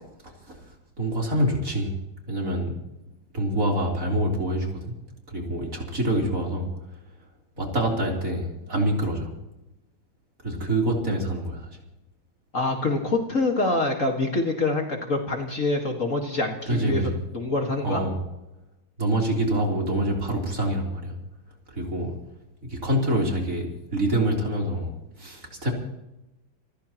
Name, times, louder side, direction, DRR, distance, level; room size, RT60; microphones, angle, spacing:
voice 1, 1.0-1.9 2.3-2.7 3.3-4.9 5.3-6.7 7.6-9.3 10.4-11.7 16.7-17.1 17.8-18.2 19.0-21.1 21.7-22.1 22.6-25.7, right 1 dB, 40° right, -1 dB, 4.2 m, -26 dB
voice 2, 12.5-17.0 17.3-18.0, left 2 dB, 40° left, 2 dB, 2.1 m, -25 dB
28.0 x 15.0 x 3.0 m, 0.92 s
omnidirectional pair, 2.2 m